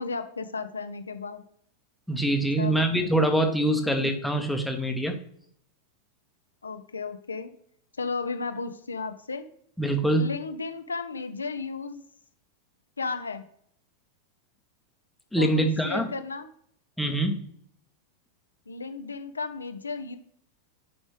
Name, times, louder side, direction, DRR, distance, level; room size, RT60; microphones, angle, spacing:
voice 1, 0.0-1.4 2.6-2.9 3.8-3.9 6.6-7.5 8.0-9.5 10.2-12.0 13.0-13.5 15.4-16.5 18.7-20.2, left 4 dB, 75° left, 8 dB, 0.6 m, -34 dB
voice 2, 2.1-5.2 9.8-10.2 15.3-16.1 17.0-17.4, right 1 dB, ahead, 4 dB, 1.0 m, -24 dB
10.0 x 5.3 x 3.2 m, 0.66 s
figure-of-eight pair, 90°, 0 cm